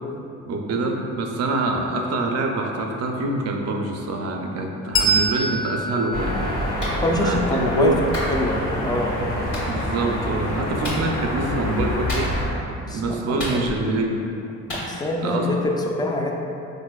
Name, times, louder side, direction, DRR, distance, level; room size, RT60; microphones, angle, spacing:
voice 1, 0.5-6.3 7.2-8.0 9.4-12.3 12.9-14.2 15.2-15.6, right 2 dB, 55° right, 1 dB, 0.4 m, -25 dB
Bell, 4.9-8.0, right 2 dB, 45° left, 0.7 m, -26 dB
sound 1, 6.1-12.5, left 1 dB, 65° left, 1.0 m, -27 dB
Clapping, 6.8-7.0 8.1-8.3 9.5-9.7 10.8-11.0 12.1-12.5 13.4-14.0 14.7-14.9, equal, 80° left, 1.3 m, -30 dB
voice 2, 7.0-7.9 8.3-9.1 12.8-13.7 14.7-16.3, left 1 dB, 15° left, 0 dB, 0.3 m, -25 dB
4.1 x 2.5 x 2.2 m, 2.7 s
cardioid pair, 90°, 30 cm